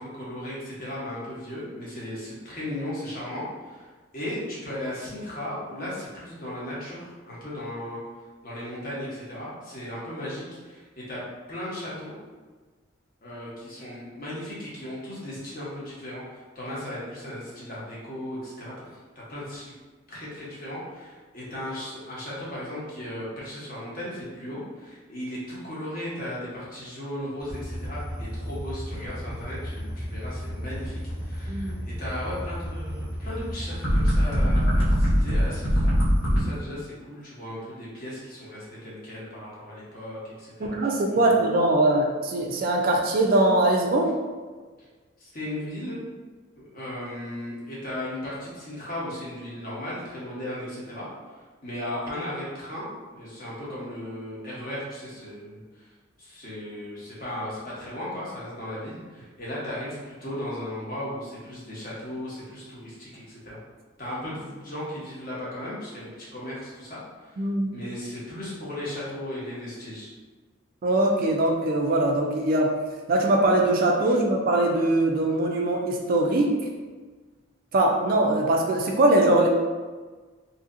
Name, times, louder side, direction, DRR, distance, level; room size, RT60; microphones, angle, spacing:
voice 1, 0.0-3.9 4.1-8.0 8.4-11.2 11.5-12.1 13.2-18.9 19.1-19.7 20.1-40.9 41.3-41.4 45.2-46.0 46.6-51.1 51.6-55.9 56.2-63.6 64.0-67.4 67.7-70.1 74.0-74.2, left 1 dB, 40° left, -7 dB, 0.9 m, -36 dB
sound 1, 27.4-36.4, equal, 60° left, 1.2 m, -24 dB
voice 2, 31.5-31.9 40.6-44.1 67.4-67.7 70.8-72.7 73.1-76.5 77.7-79.5, right 1 dB, 45° right, 0 dB, 0.3 m, -22 dB
2.8 x 2.7 x 2.5 m, 1.4 s
head